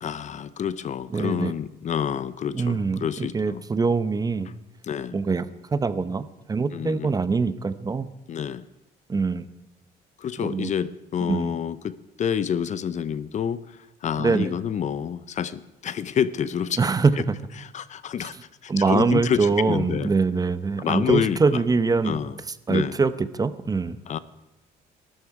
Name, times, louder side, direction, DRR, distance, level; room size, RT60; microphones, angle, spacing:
voice 1, 0.0-3.6 4.8-5.2 6.7-7.1 8.3-8.6 10.2-16.8 17.6-18.4 18.6-20.1 20.8-21.6 22.0-22.4 22.7-23.0 24.1-24.2, left 8 dB, 45° left, 16 dB, 0.7 m, -28 dB
voice 2, 1.1-1.5 2.5-4.5 5.1-8.1 9.1-9.5 10.4-10.7 11.3-11.6 14.2-14.5 16.8-17.4 18.2-18.3 18.7-22.2 22.7-24.0, right 4 dB, 20° right, 13 dB, 0.8 m, -24 dB
22.0 x 13.0 x 4.8 m, 0.97 s
cardioid pair, 110°, 17 cm